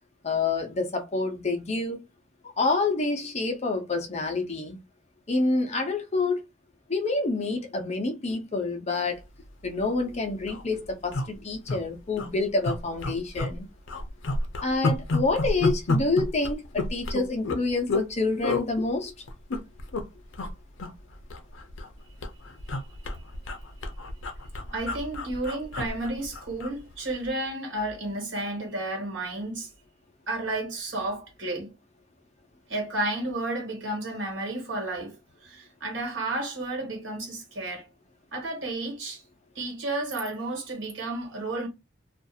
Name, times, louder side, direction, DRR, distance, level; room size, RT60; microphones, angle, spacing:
voice 1, 0.2-2.0 2.6-4.8 5.3-6.4 6.9-9.2 9.6-13.7 14.6-19.1, left 3 dB, 35° left, 0.7 m, -27 dB
sound 1, 9.7-9.8 10.1-10.2 10.4-10.6 11.1-11.8 12.1-12.3 12.6-13.6 13.9-18.1 18.4-18.7 19.3-20.0 20.3-20.5 20.8-21.9 22.2-26.8 27.1-27.3, left 2 dB, 80° left, 0.6 m, -30 dB
voice 2, 24.7-29.7 30.3-31.7 32.7-37.9 38.3-39.2 39.5-41.7, right 2 dB, 70° right, 1.5 m, -32 dB
2.5 x 2.4 x 2.7 m
head